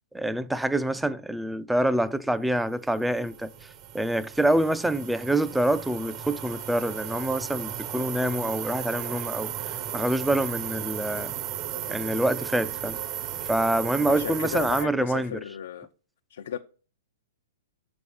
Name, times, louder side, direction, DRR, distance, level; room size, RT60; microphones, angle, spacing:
voice 1, 0.1-3.7 3.9-11.3 11.9-13.0 13.5-15.3, right 1 dB, 5° right, 0.4 m, -26 dB
sound 1, 2.7-14.9, right 11 dB, 30° right, 0.7 m, -35 dB
voice 2, 14.1-15.9 16.3-16.6, left 9 dB, 70° left, 0.6 m, -34 dB
6.8 x 5.4 x 6.4 m
hypercardioid pair, 150°, 0 cm